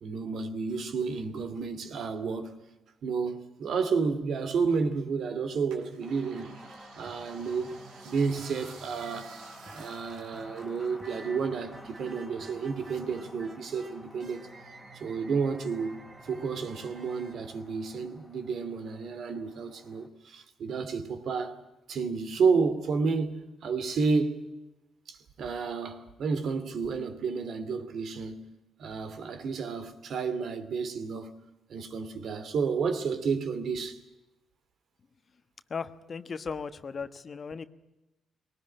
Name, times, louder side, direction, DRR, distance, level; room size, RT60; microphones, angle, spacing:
voice 1, 0.0-2.6 3.0-6.5 7.0-7.7 8.0-9.3 9.7-14.5 15.0-21.6 21.9-24.4 25.1-28.5 28.8-31.4 31.7-34.0, right 5 dB, 65° right, 2.5 m, -31 dB
sound 1, 5.7-11.5 11.8-13.1 13.6-14.4 14.9-15.0, right 6 dB, 90° right, 2.7 m, -54 dB
Wind, 6.0-20.1, left 1 dB, 5° left, 3.1 m, -52 dB
sound 2, 6.3-18.2, right 3 dB, 45° right, 3.5 m, -51 dB
voice 2, 35.7-37.7, left 5 dB, 40° left, 1.2 m, -37 dB
20.5 x 19.0 x 9.9 m
cardioid pair, 90°, 0 cm